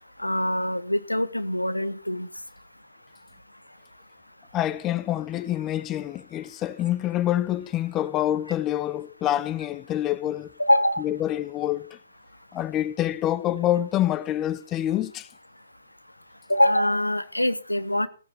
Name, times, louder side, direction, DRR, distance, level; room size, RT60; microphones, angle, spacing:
voice 1, 0.2-2.3 10.6-11.0 16.5-18.1, left 1 dB, 90° left, 1.1 m, -23 dB
voice 2, 4.5-10.5 11.0-12.0 12.5-15.3, left 12 dB, 20° left, 0.5 m, -26 dB
16.0 x 9.7 x 4.4 m
figure-of-eight pair, 130°, 0 cm